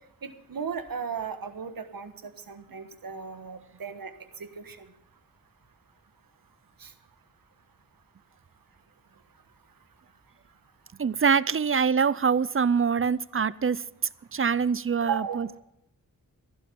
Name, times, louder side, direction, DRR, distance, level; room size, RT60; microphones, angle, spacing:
voice 1, 0.2-4.1 4.4-4.8 6.8-6.9 15.0-15.4, right 6 dB, 80° right, 9 dB, 1.4 m, -35 dB
voice 2, 11.0-13.8 14.3-15.5, right 6 dB, 40° right, 20 dB, 0.5 m, -24 dB
15.0 x 12.0 x 5.3 m, 0.80 s
cardioid pair, 50°, 34 cm